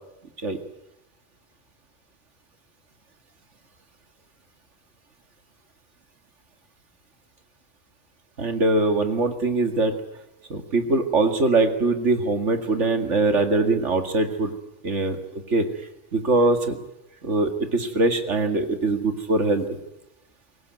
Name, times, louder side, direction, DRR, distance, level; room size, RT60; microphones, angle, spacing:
voice 1, 8.4-9.9 10.5-14.5 14.8-15.6 16.1-16.8 17.2-19.7, right 2 dB, 75° right, 7 dB, 2.4 m, -22 dB
23.5 x 18.0 x 9.5 m, 0.89 s
omnidirectional pair, 1.2 m